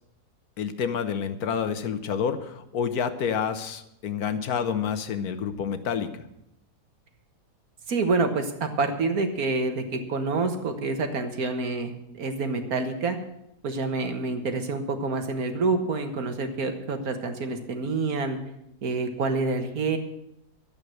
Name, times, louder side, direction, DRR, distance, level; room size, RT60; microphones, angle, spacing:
voice 1, 0.6-6.1, left 7 dB, 75° left, 10 dB, 1.5 m, -28 dB
voice 2, 7.9-13.2 13.6-18.4 18.8-20.0, right 3 dB, 70° right, 6 dB, 1.9 m, -27 dB
12.5 x 8.6 x 7.8 m, 0.81 s
omnidirectional pair, 1.6 m